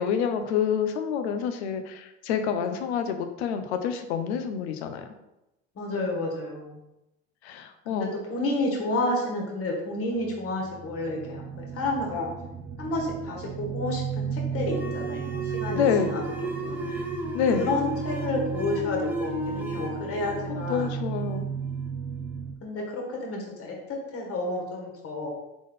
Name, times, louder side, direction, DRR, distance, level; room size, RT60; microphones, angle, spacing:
voice 1, 0.0-5.1 7.4-8.1 15.7-16.1 16.9-17.1 17.3-17.7 20.5-21.5, left 7 dB, 80° left, 8 dB, 0.7 m, -28 dB
voice 2, 5.7-6.8 7.9-12.3 12.8-16.2 16.6-17.1 17.5-20.9 22.6-25.3, left 2 dB, 45° left, -1 dB, 1.5 m, -30 dB
sound 1, 10.2-22.5, right 6 dB, 40° right, 0.9 m, -35 dB
sound 2, 14.6-21.9, right 1 dB, 5° right, 0.8 m, -34 dB
3.9 x 3.7 x 3.6 m, 0.92 s
hypercardioid pair, 80°, 32 cm